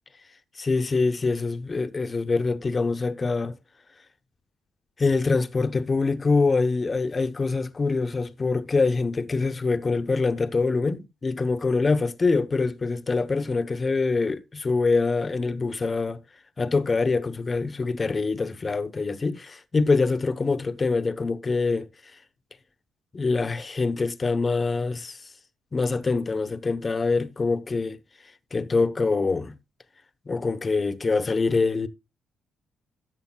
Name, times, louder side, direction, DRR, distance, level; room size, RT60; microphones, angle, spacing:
voice 1, 0.6-3.5 5.0-16.2 16.6-21.9 23.1-25.2 25.7-28.0 28.5-29.6 30.3-31.9, left 4 dB, 30° left, 1.0 m, -24 dB
13.5 x 8.4 x 2.3 m
cardioid pair, 90°, 0 cm